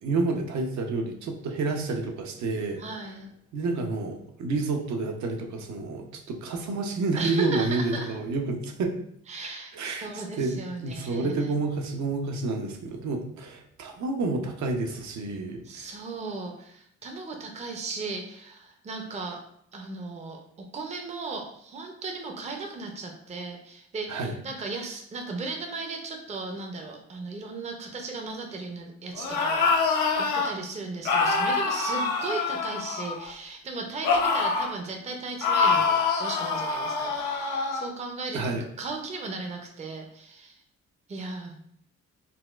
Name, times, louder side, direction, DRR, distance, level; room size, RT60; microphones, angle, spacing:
voice 1, 0.0-2.8 3.5-8.9 9.7-15.6 24.1-24.3 38.3-38.6, right 3 dB, 65° right, 3 dB, 0.7 m, -29 dB
voice 2, 2.8-3.3 7.2-8.1 9.3-11.5 15.6-19.4 19.7-20.4 20.7-29.7 30.2-38.5 38.8-40.6 41.1-41.6, right 3 dB, 25° right, 2 dB, 0.5 m, -36 dB
sound 1, 29.2-30.5 31.1-33.3 34.0-34.8 35.4-37.9, left 4 dB, 80° left, 0.6 m, -25 dB
4.0 x 2.3 x 2.3 m, 0.68 s
cardioid pair, 90°, 30 cm